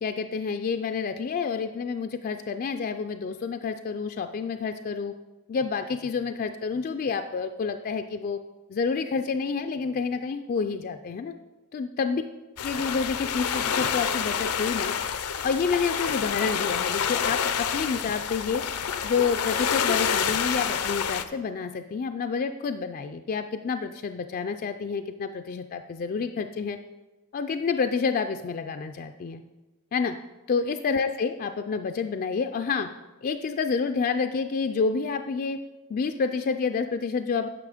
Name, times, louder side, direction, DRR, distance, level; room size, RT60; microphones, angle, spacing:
voice 1, 0.0-5.1 5.5-8.4 8.7-11.3 11.7-12.2 12.6-14.9 15.4-18.6 19.0-26.8 27.3-29.4 29.9-30.1 30.5-32.9 33.2-35.6 35.9-37.5, left 5 dB, 40° left, 7 dB, 0.3 m, -28 dB
sound 1, 12.6-21.2, left 7 dB, 85° left, 0.6 m, -28 dB
9.7 x 6.2 x 5.0 m, 1.1 s
head